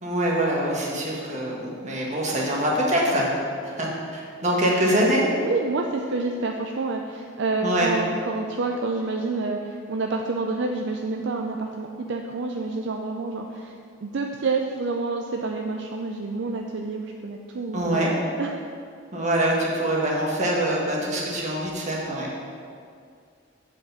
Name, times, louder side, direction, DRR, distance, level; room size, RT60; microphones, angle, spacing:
voice 1, 0.0-3.3 3.6-5.2 7.6-7.9 17.7-18.1 19.1-22.3, right 1 dB, 35° right, -3 dB, 1.5 m, -24 dB
voice 2, 5.4-13.7 14.0-18.5, right 3 dB, 60° right, 2 dB, 0.5 m, -28 dB
7.4 x 5.3 x 6.8 m, 2.4 s
head